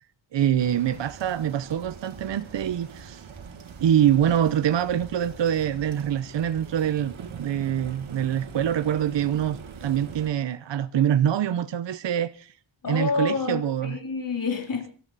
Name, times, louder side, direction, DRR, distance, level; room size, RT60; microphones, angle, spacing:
voice 1, 0.3-3.2 3.8-7.1 7.4-12.5 12.9-14.0, right 10 dB, 65° right, 0.9 m, -25 dB
sound 1, 0.6-10.3, right 6 dB, 90° right, 2.6 m, -42 dB
voice 2, 12.8-14.9, left 5 dB, 45° left, 3.2 m, -28 dB
24.5 x 13.5 x 4.1 m
wide cardioid pair, 155°, 46 cm